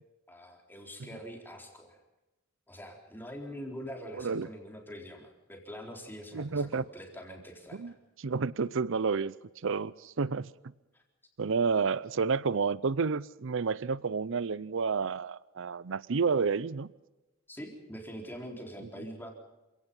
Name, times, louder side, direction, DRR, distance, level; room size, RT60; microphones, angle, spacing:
voice 1, 0.3-2.0 2.7-7.9 10.9-11.0 17.5-19.3, equal, 10° left, 4.0 m, -44 dB
voice 2, 4.2-4.5 6.3-6.8 7.8-7.9 8.2-9.3 9.6-10.5 11.4-16.9, right 5 dB, 65° right, 0.6 m, -30 dB
28.0 x 17.5 x 5.6 m
head